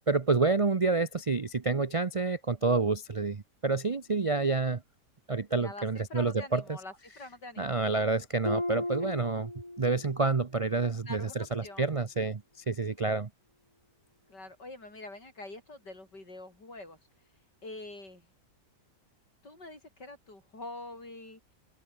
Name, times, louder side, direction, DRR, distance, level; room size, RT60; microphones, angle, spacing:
voice 1, 0.0-4.8 5.3-6.8 7.6-9.5 9.8-12.4 12.7-13.3, right 3 dB, 60° right, 0.3 m, -28 dB
voice 2, 5.6-7.8 9.0-9.1 11.1-11.8 14.3-17.0 17.6-18.3 19.4-21.4, left 2 dB, 80° left, 8.1 m, -45 dB
Harp, 8.4-10.2 10.6-11.0 11.5-11.6, left 1 dB, 15° left, 3.2 m, -35 dB
open air
omnidirectional pair, 1.8 m